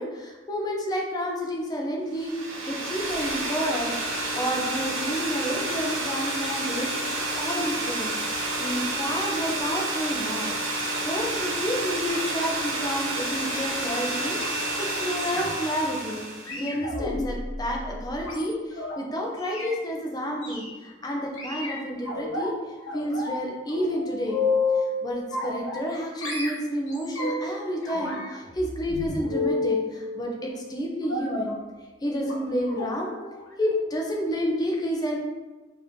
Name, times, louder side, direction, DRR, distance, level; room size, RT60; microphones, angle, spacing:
voice 1, 0.0-2.3 2.7-4.0 4.3-8.1 8.6-16.2 16.6-22.5 22.9-24.4 25.0-31.5 32.0-33.1 33.6-35.2, equal, 20° left, -1 dB, 0.6 m, -30 dB
sound 1, 2.1-16.6, right 2 dB, 80° right, 0.9 m, -30 dB
sound 2, 15.2-15.8 16.4-18.9 19.4-19.7 20.4-20.7 21.4-22.5 22.9-23.4 23.7-24.9 25.3-25.9 26.2-27.5 27.8-29.9 31.1-31.5 32.2-32.4 32.7-32.9 33.2-33.4 33.7-33.8, left 3 dB, 80° left, 0.9 m, -31 dB
4.1 x 2.6 x 3.6 m, 1.2 s
head